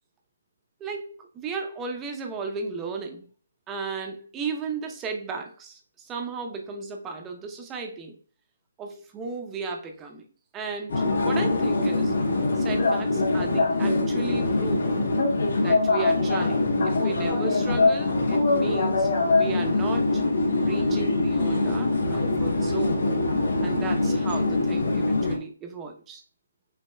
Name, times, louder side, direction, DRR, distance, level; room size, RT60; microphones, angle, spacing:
voice 1, 0.8-3.3 3.7-8.2 8.8-10.2 10.5-12.1 12.6-14.9 15.6-20.3 20.6-23.0 23.6-26.2, right 4 dB, 10° right, 3 dB, 0.6 m, -35 dB
sound 1, 10.9-25.4, left 2 dB, 65° left, 1.9 m, -23 dB
6.2 x 3.3 x 2.2 m, 0.41 s
hypercardioid pair, 170°, 0 cm